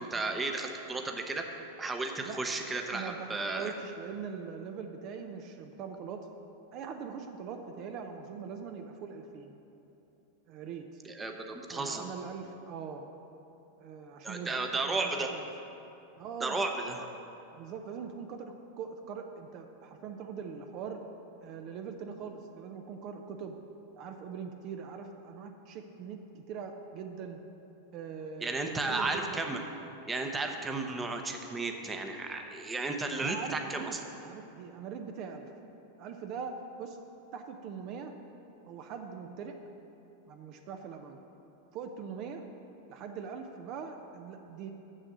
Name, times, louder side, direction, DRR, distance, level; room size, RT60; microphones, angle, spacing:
voice 1, 0.0-1.4 1.8-3.7 11.0-12.1 14.2-15.3 16.4-17.1 28.4-29.6 30.1-34.0, right 3 dB, 15° right, 4 dB, 0.8 m, -33 dB
voice 2, 2.2-2.6 2.9-6.3 6.7-9.5 10.5-11.0 11.7-13.1 13.8-15.0 15.3-15.4 16.2-16.6 17.6-21.1 21.4-23.6 24.0-27.4 27.9-29.5 33.2-35.5 36.0-37.0 37.3-38.1 38.7-39.6 40.3-41.2 41.7-42.4 42.9-44.7, right 6 dB, 50° right, 5 dB, 0.6 m, -42 dB
6.6 x 6.4 x 7.3 m, 3.0 s
hypercardioid pair, 120°, 0 cm